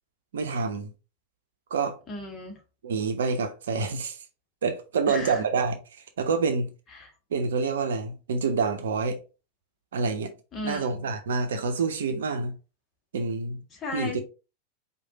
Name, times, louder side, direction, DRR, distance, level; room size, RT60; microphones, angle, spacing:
voice 1, 0.3-0.9 1.7-2.0 2.8-4.2 4.6-5.8 6.2-6.7 7.3-9.2 9.9-10.3 10.6-12.5 13.1-13.6 13.9-14.2, right 4 dB, 60° right, 0.8 m, -27 dB
voice 2, 2.1-2.6 5.1-5.4 6.9-7.1 10.5-11.0 13.7-14.2, left 2 dB, 25° left, 1.6 m, -35 dB
4.9 x 2.5 x 3.9 m
figure-of-eight pair, 90°, 0 cm